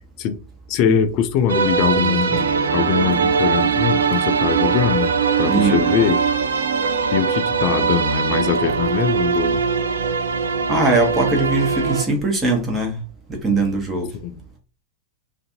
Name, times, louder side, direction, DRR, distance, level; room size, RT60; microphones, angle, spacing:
voice 1, 0.7-5.1 5.4-6.2 7.1-9.6 14.2-14.4, left 8 dB, 40° left, 0.4 m, -22 dB
sound 1, 1.5-12.0, right 5 dB, 70° right, 0.3 m, -21 dB
voice 2, 5.4-5.9 10.7-13.0 13.3-14.1, right 2 dB, 20° right, 0.9 m, -20 dB
2.5 x 2.5 x 2.6 m
figure-of-eight pair, 90°, 0 cm